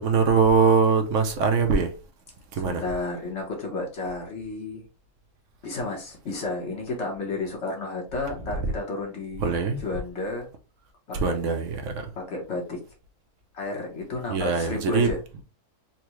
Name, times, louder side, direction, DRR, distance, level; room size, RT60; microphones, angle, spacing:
voice 1, 0.0-1.9 2.6-2.8 9.4-9.8 11.1-12.1 14.3-15.1, right 5 dB, 60° right, 0.9 m, -22 dB
voice 2, 2.5-4.8 5.6-9.4 9.8-10.5 11.1-11.3 12.1-12.8 13.5-15.2, left 3 dB, 50° left, 1.4 m, -32 dB
4.1 x 2.3 x 3.0 m
omnidirectional pair, 1.6 m